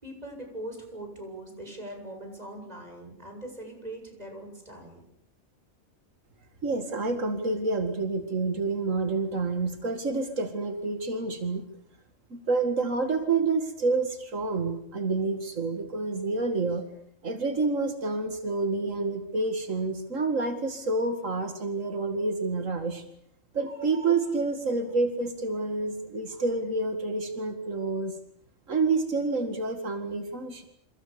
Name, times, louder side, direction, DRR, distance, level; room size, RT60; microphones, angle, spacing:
voice 1, 0.0-5.0, right 1 dB, 30° right, 3 dB, 7.6 m, -41 dB
voice 2, 6.6-11.6 12.3-16.8 17.2-23.0 23.5-28.1 28.7-30.7, right 3 dB, 85° right, 7 dB, 2.5 m, -28 dB
28.5 x 27.5 x 6.9 m, 0.68 s
omnidirectional pair, 1.3 m